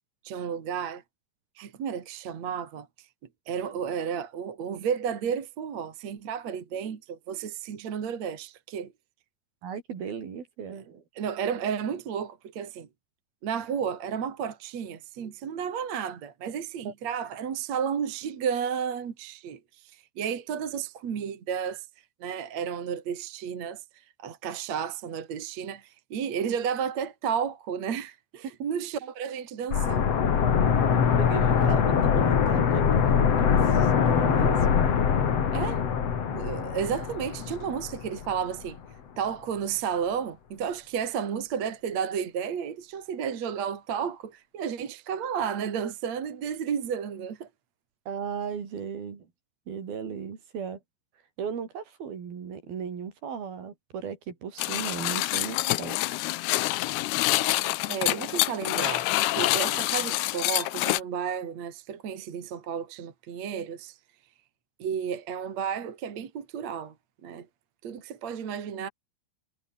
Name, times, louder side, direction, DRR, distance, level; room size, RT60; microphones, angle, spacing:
voice 1, 0.2-1.0 1.6-2.9 3.5-8.9 11.1-12.9 13.4-21.9 22.2-30.0 35.5-35.8 36.3-38.8 39.2-47.5 57.9-64.0 64.8-66.9 67.2-67.5 67.8-68.9, right 7 dB, 45° right, 3.2 m, -32 dB
voice 2, 9.6-11.0 16.9-17.0 31.2-34.8 48.1-49.3 49.7-50.8 51.4-56.2, right 7 dB, 60° right, 5.3 m, -36 dB
sound 1, 29.7-38.4 38.7-38.8, left 7 dB, 45° left, 2.9 m, -23 dB
sound 2, 54.6-61.0, left 19 dB, 80° left, 2.8 m, -26 dB
omnidirectional pair, 4.8 m